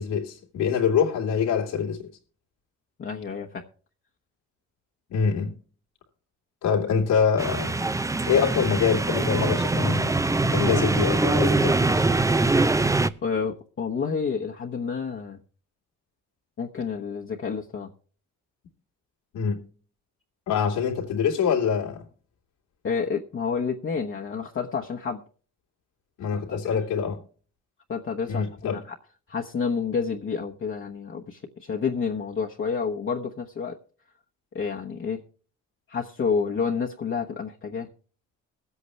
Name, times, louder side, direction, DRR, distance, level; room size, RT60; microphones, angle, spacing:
voice 1, 0.0-2.1 5.1-5.6 6.6-7.7 8.3-10.1 10.4-11.8 19.3-19.6 20.5-22.1 26.2-27.2 28.3-28.8, left 6 dB, 90° left, 2.7 m, -25 dB
voice 2, 3.0-3.6 13.2-15.4 16.6-17.9 22.8-25.2 26.5-26.8 27.9-28.8 29.3-33.8 34.5-35.2 35.9-37.9, left 5 dB, 45° left, 1.1 m, -29 dB
sound 1, 7.4-13.1, right 2 dB, 10° right, 0.5 m, -23 dB
21.5 x 8.2 x 3.3 m
cardioid pair, 90°, 30 cm